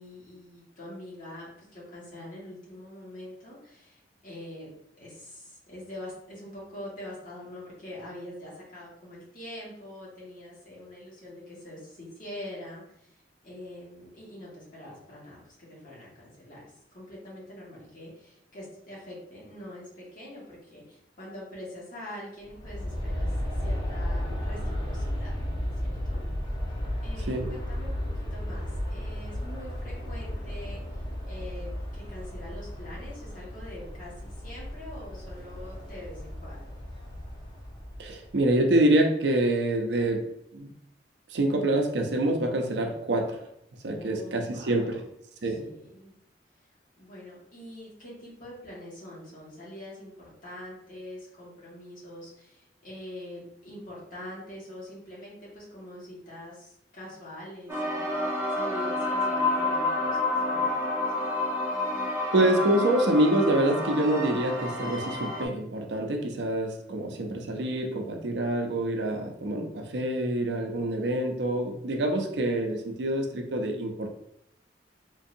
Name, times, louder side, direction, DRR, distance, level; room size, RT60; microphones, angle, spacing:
voice 1, 0.0-4.7 5.0-25.3 25.8-26.2 27.0-36.8 43.9-45.1 45.4-46.1 47.0-60.2 60.4-60.9, left 1 dB, 50° left, -6 dB, 1.5 m, -44 dB
Aircraft, 22.4-38.5, equal, 25° left, 0.7 m, -34 dB
voice 2, 38.0-40.3 40.5-40.7 41.3-43.4 43.8-45.0 45.4-45.7 62.3-74.1, right 1 dB, 70° right, 3 dB, 0.5 m, -26 dB
sound 1, 57.7-65.5, left 2 dB, 15° right, 0.7 m, -29 dB
3.7 x 2.7 x 2.5 m, 0.74 s
head